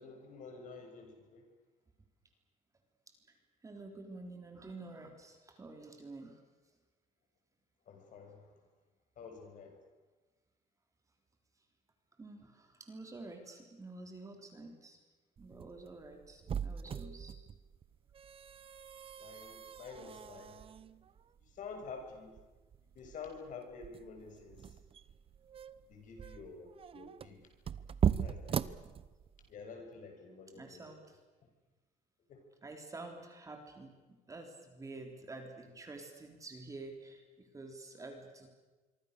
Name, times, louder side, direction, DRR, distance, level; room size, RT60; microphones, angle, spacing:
voice 1, 0.0-1.4 7.9-8.5 9.2-9.8 19.2-20.7 21.5-22.4 22.9-24.8 25.9-27.5 28.2-28.7 29.5-30.8 31.4-31.5 32.3-32.4, left 5 dB, 50° left, 4 dB, 6.6 m, -49 dB
voice 2, 3.6-6.4 12.2-15.0 15.4-17.3 30.5-31.2 32.6-38.5, right 2 dB, 20° right, 4 dB, 3.7 m, -49 dB
sound 1, 15.4-29.5, right 8 dB, 35° right, 0.9 m, -40 dB
26.0 x 24.5 x 6.8 m, 1.2 s
cardioid pair, 145°, 17 cm